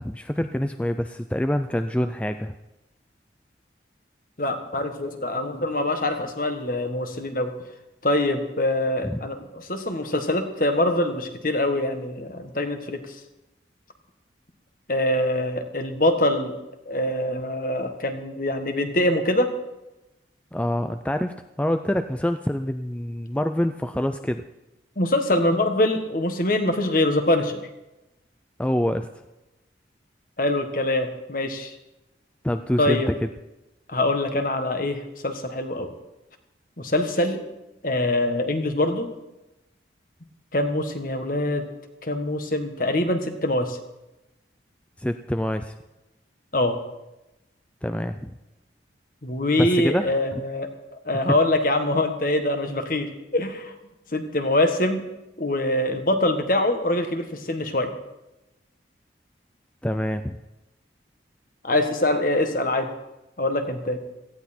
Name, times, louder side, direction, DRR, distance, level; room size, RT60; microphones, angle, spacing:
voice 1, 0.0-2.5 9.0-9.2 20.5-24.4 28.6-29.1 32.4-33.1 45.0-45.7 47.8-48.3 49.6-50.1 59.8-60.4, left 1 dB, 5° left, 8 dB, 0.4 m, -26 dB
voice 2, 4.4-7.5 8.0-13.0 14.9-16.5 16.9-19.5 25.0-27.6 30.4-31.7 32.8-33.1 33.9-35.9 36.8-37.4 37.8-39.1 40.5-41.7 42.0-43.8 46.5-46.8 49.2-50.7 51.0-53.7 54.1-55.0 55.4-57.9 61.6-62.9 63.4-64.0, left 1 dB, 50° left, 6 dB, 1.6 m, -24 dB
18.0 x 14.5 x 4.4 m, 0.98 s
head